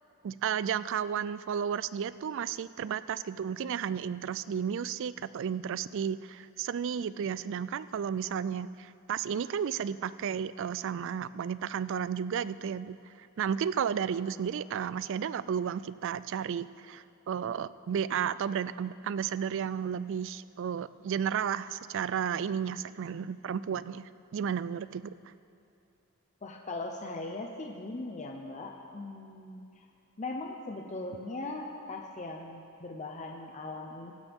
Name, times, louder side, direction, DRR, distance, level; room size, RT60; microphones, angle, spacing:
voice 1, 0.2-25.3, right 8 dB, 60° right, 16 dB, 0.3 m, -33 dB
voice 2, 26.4-29.8 30.2-34.1, left 2 dB, 35° left, 1 dB, 0.8 m, -39 dB
23.0 x 11.5 x 3.6 m, 2.7 s
head